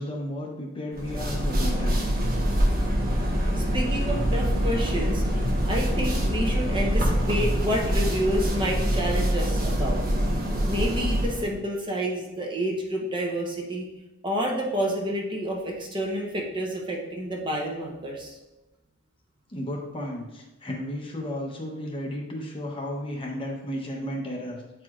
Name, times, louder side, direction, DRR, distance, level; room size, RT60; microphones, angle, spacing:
voice 1, 0.0-2.0 3.4-3.6 19.5-24.8, left 1 dB, 25° left, 0 dB, 0.8 m, -34 dB
sound 1, 0.9-11.5, equal, 45° right, 1.0 m, -25 dB
voice 2, 3.6-5.2 5.6-10.0 10.6-13.9 14.2-18.4, equal, 25° right, -1 dB, 0.9 m, -29 dB
8.4 x 4.7 x 2.4 m, 1.0 s
head